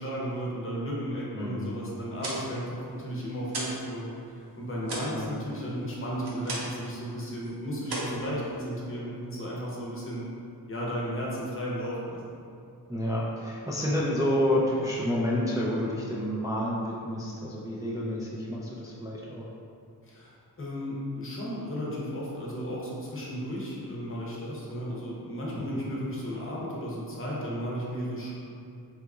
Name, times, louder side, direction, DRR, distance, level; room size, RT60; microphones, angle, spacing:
voice 1, 0.0-4.1 4.3-10.2 10.7-12.4 20.0-28.3, equal, 35° left, -5 dB, 0.8 m, -34 dB
voice 2, 1.3-1.6 5.1-5.3 12.9-19.5 25.7-25.8, equal, 10° right, -6 dB, 0.3 m, -29 dB
sound 1, 2.0-3.9 4.2-6.9 7.2-7.5 7.8-8.9, right 2 dB, 75° right, 0.7 m, -37 dB
2.8 x 2.3 x 3.7 m, 2.5 s
wide cardioid pair, 95°, 40 cm